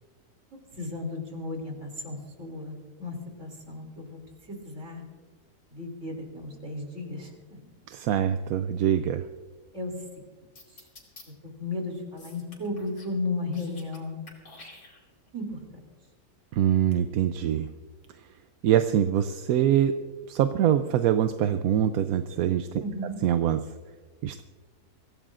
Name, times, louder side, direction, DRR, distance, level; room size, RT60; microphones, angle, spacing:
voice 1, 0.7-4.2 4.5-5.0 5.7-7.6 9.7-9.9 11.4-14.2 15.3-15.8 22.8-23.2, left 2 dB, 45° right, 1 dB, 3.2 m, -35 dB
voice 2, 7.9-9.2 16.5-17.7 18.6-19.9 20.3-22.7 23.2-23.6 24.2-24.4, right 10 dB, 70° right, 9 dB, 1.0 m, -24 dB
sound 1, 10.6-11.2 12.2-13.1 13.4-14.0 14.3-15.3, left 2 dB, 70° left, 3.2 m, -49 dB
24.0 x 16.0 x 2.5 m, 1.3 s
omnidirectional pair, 1.7 m